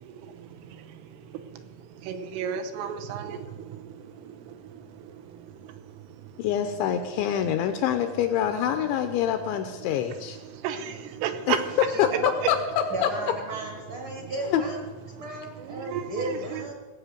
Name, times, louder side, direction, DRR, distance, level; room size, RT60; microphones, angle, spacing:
voice 1, 0.0-6.4 10.5-11.6 14.1-14.3 15.1-16.7, right 8 dB, 80° right, 7 dB, 3.4 m, -36 dB
voice 2, 6.4-10.4 11.5-11.6 12.0-12.6 13.0-13.1 14.4-14.6, left 10 dB, 85° left, 7 dB, 2.7 m, -25 dB
voice 3, 11.9-12.3 12.9-14.8 15.1-16.7, right 1 dB, 50° right, 1 dB, 1.5 m, -35 dB
18.5 x 8.2 x 6.7 m, 1.3 s
omnidirectional pair, 5.9 m